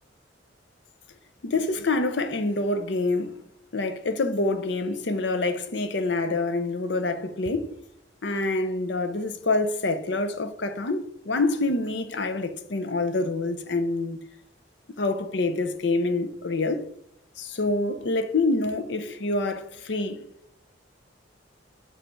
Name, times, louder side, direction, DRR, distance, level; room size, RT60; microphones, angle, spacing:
voice 1, 1.4-3.4 3.7-7.7 8.2-14.2 15.0-16.9 17.4-20.3, left 2 dB, 65° left, 0.7 m, -26 dB
7.6 x 4.9 x 4.5 m
head